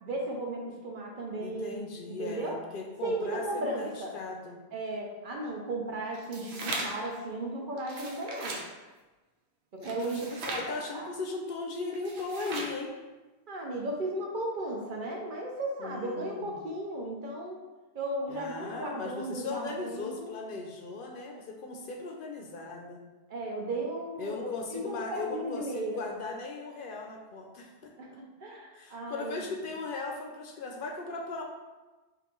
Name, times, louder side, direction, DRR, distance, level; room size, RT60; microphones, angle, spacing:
voice 1, 0.0-1.8 2.1-2.6 3.0-4.1 4.7-8.6 9.8-10.2 10.5-11.1 13.5-17.6 17.9-20.3 23.3-26.0 28.0-29.4, right 1 dB, 55° right, 0 dB, 0.8 m, -35 dB
voice 2, 1.4-4.6 9.8-12.9 15.8-16.6 18.3-23.0 24.2-28.2 28.7-31.4, left 3 dB, 65° left, 2 dB, 0.7 m, -38 dB
sound 1, 6.1-7.1 7.8-8.7 9.8-10.7 11.9-12.8, right 2 dB, 90° right, 0.9 m, -38 dB
5.2 x 2.5 x 3.0 m, 1.2 s
omnidirectional pair, 1.0 m